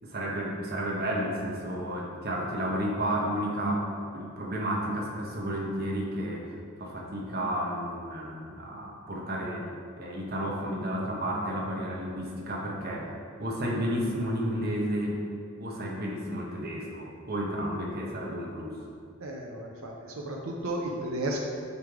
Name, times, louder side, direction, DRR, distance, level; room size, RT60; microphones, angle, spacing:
voice 1, 0.0-6.5 6.8-9.7 10.0-13.1 13.4-15.2 15.6-18.8, equal, 50° right, -2 dB, 1.0 m, -32 dB
voice 2, 19.2-21.4, right 1 dB, 90° right, 0 dB, 0.6 m, -33 dB
9.4 x 3.4 x 3.5 m, 2.4 s
head